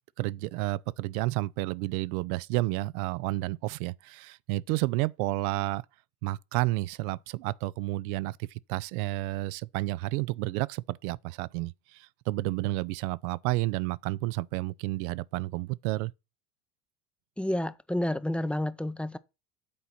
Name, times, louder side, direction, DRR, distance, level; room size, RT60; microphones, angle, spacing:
voice 1, 0.2-5.8 6.2-16.1, right 19 dB, 75° right, 0.5 m, -31 dB
voice 2, 17.4-19.2, left 1 dB, 5° left, 0.5 m, -30 dB
8.6 x 4.1 x 5.7 m
hypercardioid pair, 80°, 44 cm